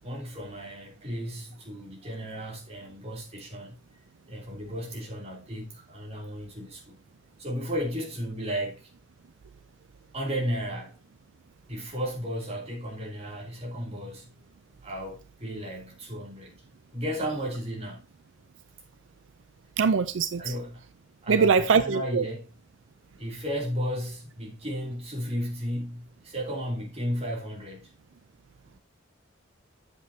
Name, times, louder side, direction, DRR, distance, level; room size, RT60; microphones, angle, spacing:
voice 1, 0.0-3.7 4.3-7.0 7.4-8.9 10.1-11.0 11.7-14.3 14.8-16.6 16.9-18.1 20.4-20.8 21.2-22.5 23.1-27.9, equal, 35° right, 3.0 m, -34 dB
voice 2, 19.8-20.5 21.3-22.3, right 5 dB, 80° right, 0.5 m, -22 dB
8.4 x 8.3 x 2.8 m
head